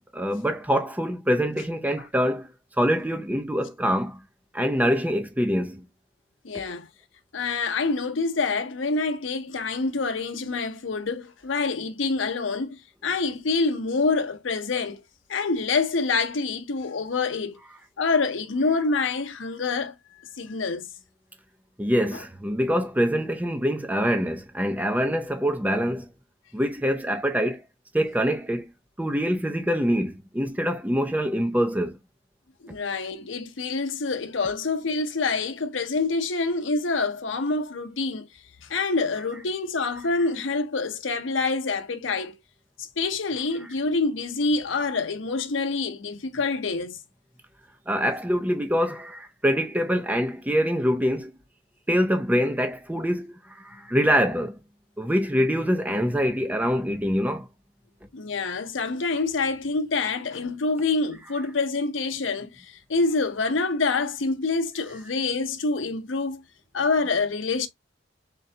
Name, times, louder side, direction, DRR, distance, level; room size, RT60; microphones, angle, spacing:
voice 1, 0.0-4.2 4.5-5.9 6.7-6.8 21.8-26.1 26.5-27.6 27.9-28.7 29.0-32.0 47.9-51.3 51.9-54.6 55.0-57.5, equal, 10° right, 0.5 m, -25 dB
voice 2, 6.4-6.9 7.3-15.0 15.3-17.6 18.0-19.9 20.4-20.9 32.6-38.3 38.6-42.4 42.8-47.0 58.1-66.4 66.7-67.7, left 3 dB, 75° left, 0.7 m, -26 dB
3.8 x 3.2 x 2.7 m
head